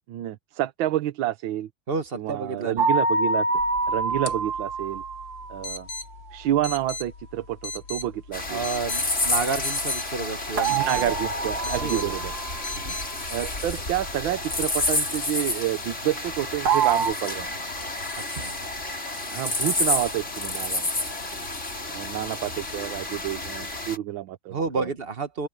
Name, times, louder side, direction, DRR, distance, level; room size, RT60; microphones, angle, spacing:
voice 1, 0.1-1.7 2.1-3.5 3.9-5.0 5.5-5.9 6.3-8.6 10.7-12.3 13.3-17.5 19.2-21.1 21.9-24.9, right 13 dB, 80° right, 1.6 m, -29 dB
voice 2, 1.9-2.9 8.5-11.1 11.6-12.1 12.8-12.9 18.3-18.5 24.5-25.5, right 4 dB, 35° right, 1.2 m, -30 dB
sound 1, 2.8-5.7 10.6-12.8 16.7-17.1, right 4 dB, 50° right, 2.1 m, -26 dB
sound 2, 3.5-13.0, left 3 dB, 80° left, 2.8 m, -39 dB
sound 3, 8.3-24.0, left 2 dB, 35° left, 4.6 m, -30 dB
open air
omnidirectional pair, 2.2 m